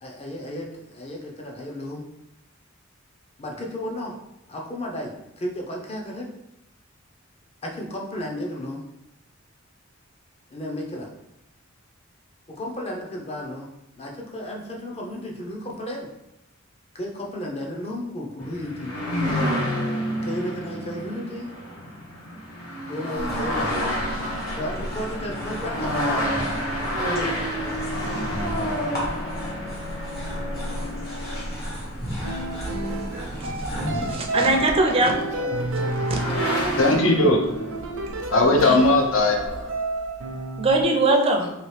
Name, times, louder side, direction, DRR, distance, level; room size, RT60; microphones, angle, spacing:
voice 1, 0.0-2.0 3.4-4.2 4.5-6.3 7.6-8.8 10.5-11.1 12.5-13.7 14.0-16.1 16.9-19.0 20.2-21.5 22.9-23.9 24.3-26.0 35.3-36.2 37.6-37.9, left 1 dB, 30° left, 0 dB, 0.6 m, -33 dB
sound 1, 18.4-33.8 35.1-35.2 35.6-37.0, equal, 90° left, 1.0 m, -29 dB
sound 2, 23.1-34.1, equal, 50° left, 1.2 m, -34 dB
sound 3, 32.2-40.8, right 2 dB, 85° right, 0.6 m, -30 dB
voice 2, 33.9-35.2 36.1-36.2 38.6-38.8 40.6-41.5, right 2 dB, 30° right, 2 dB, 0.4 m, -21 dB
voice 3, 36.8-37.8 38.3-39.7, left 2 dB, 70° left, 2 dB, 0.6 m, -19 dB
2.9 x 2.7 x 3.2 m, 0.89 s
head